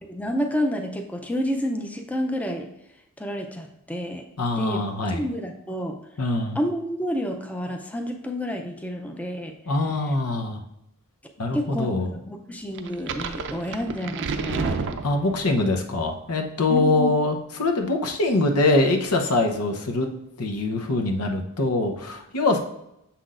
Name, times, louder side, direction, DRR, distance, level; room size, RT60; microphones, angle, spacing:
voice 1, 0.1-2.7 3.2-4.2 4.6-4.8 5.1-6.0 6.5-9.5 11.5-11.9 12.2-14.9 16.7-17.1, equal, 5° left, 3 dB, 0.5 m, -29 dB
voice 2, 4.4-5.2 6.2-6.6 9.7-10.6 11.4-12.1 15.0-20.1 20.4-22.6, left 2 dB, 85° left, 3 dB, 0.9 m, -23 dB
sound 1, 12.8-15.6, right 4 dB, 55° right, 0.5 m, -30 dB
6.9 x 5.9 x 2.5 m, 0.83 s
head